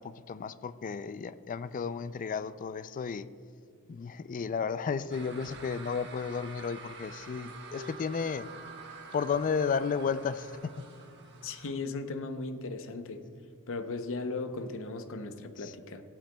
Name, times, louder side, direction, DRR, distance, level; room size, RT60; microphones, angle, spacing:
voice 1, 0.0-3.3 3.9-8.5 9.1-10.9 15.6-15.7, left 6 dB, 35° left, 14 dB, 0.3 m, -33 dB
sound 1, 5.1-11.8, right 3 dB, 55° right, 1.2 m, -47 dB
voice 2, 11.4-13.2 13.7-16.0, left 3 dB, 65° left, 7 dB, 0.7 m, -37 dB
15.5 x 11.5 x 2.3 m, 2.3 s
head